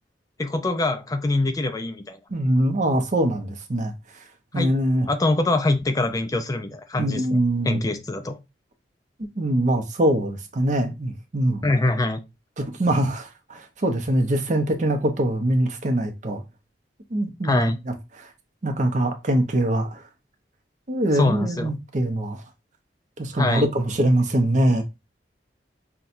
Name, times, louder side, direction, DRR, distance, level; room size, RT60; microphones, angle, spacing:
voice 1, 0.4-2.2 4.6-4.7 5.1-8.4 11.6-12.2 17.4-17.8 21.1-21.7 23.4-23.7, left 2 dB, 20° left, 0.4 m, -24 dB
voice 2, 2.3-4.2 4.5-5.1 7.0-7.8 9.4-11.7 12.6-16.4 17.1-18.3 18.6-20.0 20.9-22.4 23.2-24.8, right 1 dB, 45° right, 0.7 m, -23 dB
5.7 x 2.3 x 2.5 m
head